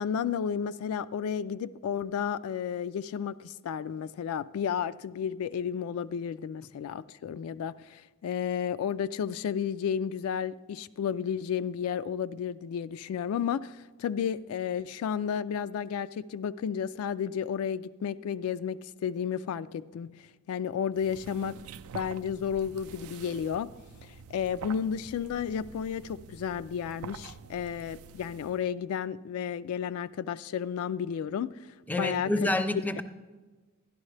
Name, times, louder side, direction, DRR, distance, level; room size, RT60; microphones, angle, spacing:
voice 1, 0.0-20.1 20.5-21.6 21.9-23.7 24.0-31.7 32.0-32.5, left 7 dB, 80° left, 0.3 m, -32 dB
sound 1, 20.9-28.6, right 6 dB, 80° right, 0.4 m, -47 dB
voice 2, 31.9-33.0, left 2 dB, 10° left, 0.4 m, -28 dB
12.0 x 11.0 x 3.2 m
head